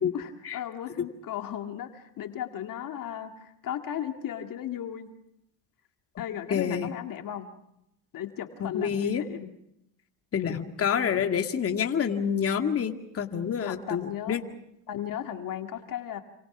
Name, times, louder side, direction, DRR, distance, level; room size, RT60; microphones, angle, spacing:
voice 1, 0.1-5.1 6.2-7.5 8.1-9.5 13.6-14.4 14.9-16.2, left 10 dB, 50° left, 6 dB, 2.1 m, -36 dB
voice 2, 6.5-6.9 8.6-9.2 10.3-14.4, left 7 dB, 30° left, 5 dB, 2.1 m, -28 dB
28.0 x 27.0 x 6.0 m, 0.81 s
supercardioid pair, 100°, 44 cm